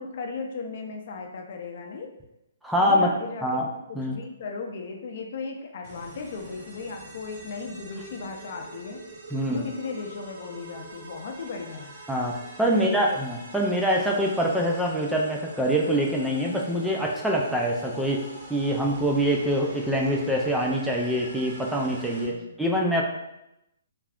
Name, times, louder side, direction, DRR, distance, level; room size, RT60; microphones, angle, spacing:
voice 1, 0.0-2.1 2.8-3.6 3.9-9.0 9.5-11.9 12.6-13.2 22.3-22.5, left 4 dB, 50° left, 2 dB, 0.5 m, -36 dB
voice 2, 2.6-3.1 3.4-3.7 4.0-4.2 9.3-9.7 12.1-18.2 18.5-23.0, equal, ahead, -2 dB, 0.3 m, -25 dB
sound 1, 5.8-22.2, right 2 dB, 40° right, 0.9 m, -45 dB
2.5 x 2.3 x 3.4 m, 0.86 s
hypercardioid pair, 160°, 0 cm